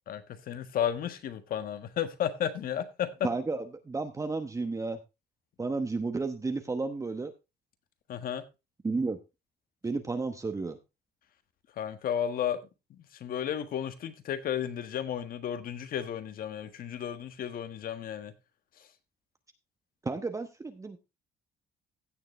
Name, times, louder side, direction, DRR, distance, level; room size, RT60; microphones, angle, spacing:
voice 1, 0.1-3.1 8.1-8.4 11.8-12.6 13.2-18.3, left 9 dB, 60° left, 1.5 m, -33 dB
voice 2, 3.2-5.0 5.6-7.3 8.8-9.2 9.8-10.8 20.0-21.0, right 3 dB, 20° right, 1.0 m, -32 dB
16.0 x 6.7 x 3.2 m
cardioid pair, 110°, 17 cm